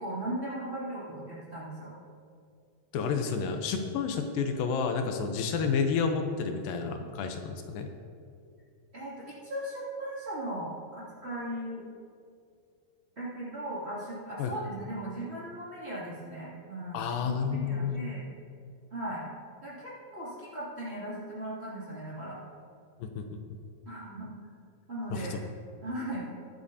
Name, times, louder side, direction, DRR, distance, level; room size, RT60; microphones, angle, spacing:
voice 1, 0.0-1.9 7.0-7.1 8.9-11.8 13.2-18.2 18.9-19.3 19.6-22.4 23.9-24.3 24.9-25.4 25.8-26.2, right 1 dB, 20° right, -9 dB, 2.3 m, -38 dB
voice 2, 2.9-7.9 14.4-14.5 16.9-18.0 23.0-23.2 23.5-23.6 25.1-25.4, left 5 dB, 80° left, 5 dB, 2.5 m, -30 dB
21.5 x 8.5 x 2.8 m, 2.3 s
omnidirectional pair, 4.1 m